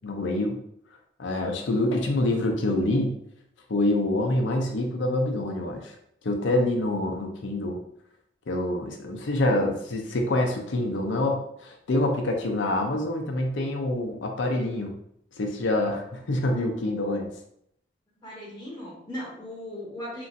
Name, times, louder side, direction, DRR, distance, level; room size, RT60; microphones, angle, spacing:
voice 1, 0.0-0.6 1.2-3.2 3.7-5.9 6.2-7.8 8.5-14.9 15.4-17.3, left 1 dB, 85° left, 2 dB, 0.5 m, -26 dB
voice 2, 18.2-20.3, left 1 dB, 20° left, -5 dB, 0.7 m, -37 dB
3.0 x 2.5 x 2.5 m, 0.73 s
head